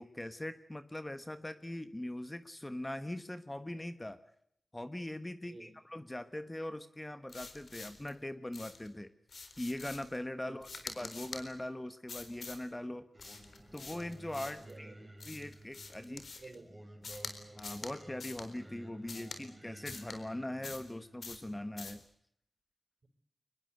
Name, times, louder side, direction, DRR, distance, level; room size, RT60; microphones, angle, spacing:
voice 1, 0.0-4.2 4.7-9.1 9.6-13.0 13.7-14.9 15.3-16.2 17.5-22.0, left 1 dB, 15° left, 11 dB, 1.3 m, -41 dB
voice 2, 5.4-5.7 10.3-10.9 14.5-15.2 16.1-16.7, right 3 dB, 45° right, 9 dB, 5.4 m, -53 dB
sound 1, 7.3-8.1 8.5-8.9 9.3-10.2 10.6-11.4 12.1-12.6 13.2-14.7 15.2-16.5 17.0-17.3 17.6-17.9 18.2-18.5 19.1-19.4 19.8-20.2 20.6-20.9 21.2-21.4 21.8-22.0, left 4 dB, 65° left, 4.1 m, -46 dB
Singing, 13.1-21.6, right 1 dB, 15° right, 5.2 m, -54 dB
24.0 x 21.0 x 8.0 m, 0.71 s
wide cardioid pair, 95°, 0 cm